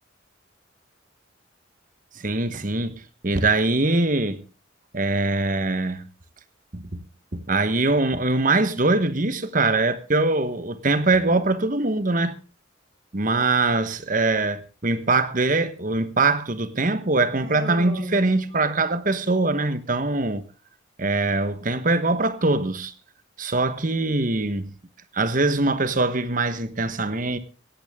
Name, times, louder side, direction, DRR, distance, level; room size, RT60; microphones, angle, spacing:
voice 1, 2.2-4.4 4.9-6.1 6.7-6.9 7.3-12.3 13.1-20.4 21.0-22.9 23.4-24.7 25.1-27.4, right 2 dB, 40° right, 1.2 m, -22 dB
Human voice, 17.4-19.1, right 1 dB, 70° right, 6.7 m, -37 dB
17.5 x 15.0 x 3.6 m
head